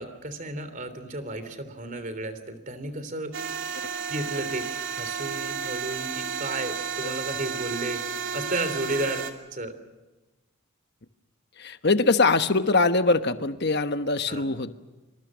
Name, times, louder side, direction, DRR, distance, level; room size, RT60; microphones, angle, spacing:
voice 1, 0.0-3.3 4.1-8.0 8.3-9.7 14.3-14.4, right 2 dB, 35° right, 11 dB, 3.3 m, -33 dB
sound 1, 3.3-9.3, right 6 dB, 60° right, 2.8 m, -32 dB
voice 2, 11.6-14.7, left 3 dB, 50° left, 9 dB, 1.2 m, -23 dB
28.0 x 26.0 x 6.3 m, 1.1 s
head